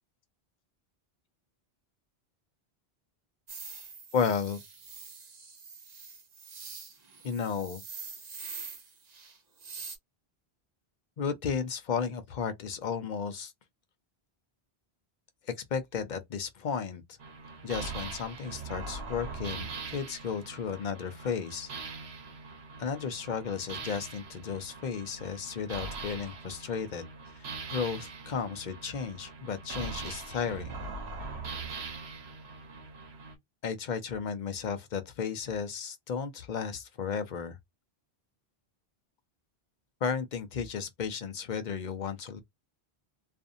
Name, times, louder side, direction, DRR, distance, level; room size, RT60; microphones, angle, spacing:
sound 1, 3.5-10.0, right 5 dB, 50° right, 0.6 m, -45 dB
voice 1, 4.1-4.6 7.2-7.8 11.2-13.5 15.7-17.0 17.6-21.7 22.8-27.1 27.7-30.8 33.6-37.6 40.0-42.4, left 6 dB, 55° left, 0.7 m, -34 dB
sound 2, 17.2-33.3, right 4 dB, 85° right, 1.1 m, -42 dB
2.5 x 2.5 x 2.5 m
omnidirectional pair, 1.0 m